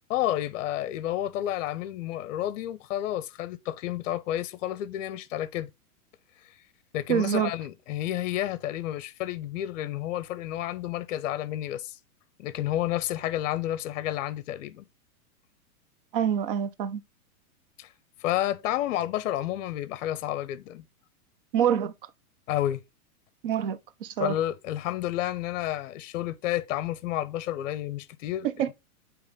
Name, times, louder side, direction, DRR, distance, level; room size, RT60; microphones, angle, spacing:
voice 1, 0.1-5.7 6.9-12.0 12.4-14.9 17.8-17.9 18.2-20.9 22.5-22.8 24.2-28.5, left 13 dB, 55° left, 0.6 m, -30 dB
voice 2, 7.1-7.5 16.1-17.0 21.5-21.9 23.4-24.4 28.6-28.7, right 9 dB, 40° right, 0.4 m, -26 dB
8.5 x 3.0 x 3.8 m
hypercardioid pair, 150°, 45 cm